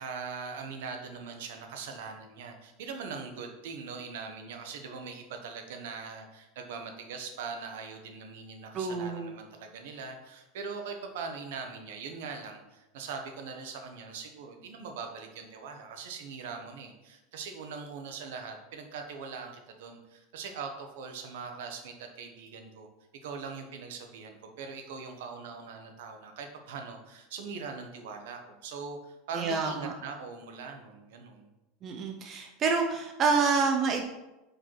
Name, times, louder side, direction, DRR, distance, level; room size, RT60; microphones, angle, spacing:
voice 1, 0.0-19.5 19.8-22.9 23.2-31.5, right 5 dB, 70° right, 4 dB, 1.0 m, -41 dB
voice 2, 8.7-9.3 29.3-29.9 31.8-34.0, right 4 dB, 25° right, 3 dB, 0.4 m, -28 dB
5.0 x 4.5 x 4.5 m, 0.99 s
supercardioid pair, 175°, 0 cm